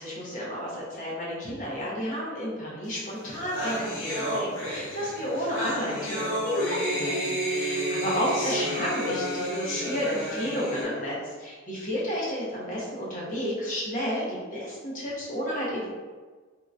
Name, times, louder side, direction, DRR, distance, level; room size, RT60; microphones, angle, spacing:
voice 1, 0.0-15.9, equal, 40° left, -6 dB, 1.0 m, -31 dB
sound 1, 3.0-3.1 3.2-10.8, equal, 75° left, 0.8 m, -30 dB
3.7 x 2.9 x 2.5 m, 1.4 s
head